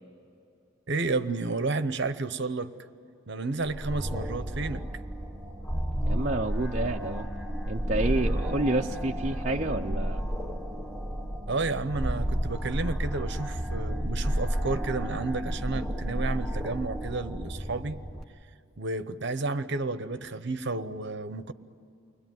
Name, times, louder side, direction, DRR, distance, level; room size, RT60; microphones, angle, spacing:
voice 1, 0.9-2.7 3.3-4.9 11.5-18.0 18.8-21.5, right 3 dB, 55° right, 11 dB, 0.9 m, -31 dB
sound 1, 3.7-18.2, equal, ahead, 1.1 m, -31 dB
voice 2, 6.1-7.3 7.7-10.2, right 2 dB, 35° right, 1 dB, 0.6 m, -29 dB
29.5 x 21.5 x 9.3 m, 2.7 s
head